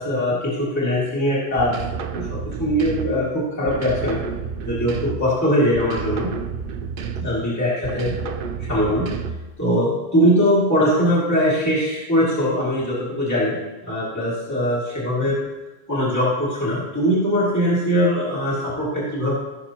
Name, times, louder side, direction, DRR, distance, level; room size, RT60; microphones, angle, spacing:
voice 1, 0.0-1.8 2.1-4.2 4.6-6.3 7.2-8.1 8.6-9.1 9.6-13.6 13.8-15.4 15.9-19.3, equal, 15° left, -9 dB, 2.4 m, -21 dB
sound 1, 1.6-3.3 3.7-5.4 5.7-7.5 7.8-9.6, right 6 dB, 65° right, 0.8 m, -30 dB
15.5 x 6.8 x 3.0 m, 1.1 s
omnidirectional pair, 1.1 m